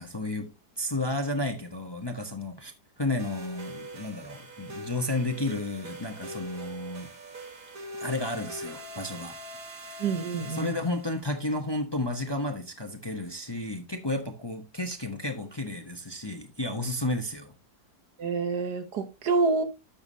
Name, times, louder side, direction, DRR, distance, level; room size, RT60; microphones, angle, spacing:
voice 1, 0.0-2.7 3.0-7.1 8.0-9.4 9.9-10.0 10.4-17.5, left 2 dB, 20° left, 0.9 m, -32 dB
sound 1, 3.2-11.3, right 1 dB, 60° right, 2.3 m, -42 dB
voice 2, 10.0-10.7 18.2-19.6, right 4 dB, 75° right, 1.7 m, -27 dB
11.5 x 7.0 x 2.7 m
omnidirectional pair, 1.7 m